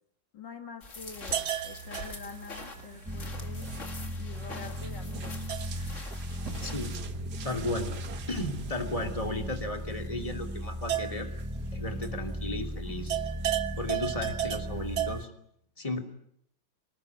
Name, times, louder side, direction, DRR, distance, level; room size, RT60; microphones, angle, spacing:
voice 1, 0.3-3.7 4.2-5.5, left 5 dB, 70° left, 6 dB, 2.7 m, -46 dB
sound 1, 0.8-7.0, left 3 dB, 40° left, 2.6 m, -45 dB
sound 2, 1.1-12.6 12.9-15.3, right 10 dB, 60° right, 1.9 m, -37 dB
sound 3, 3.1-15.2, equal, 15° right, 0.5 m, -37 dB
voice 2, 6.6-6.9 7.4-11.3 11.7-13.2 13.8-15.3 15.8-16.0, left 1 dB, 20° left, 5 dB, 3.0 m, -34 dB
25.5 x 19.5 x 9.7 m, 0.71 s
omnidirectional pair, 2.0 m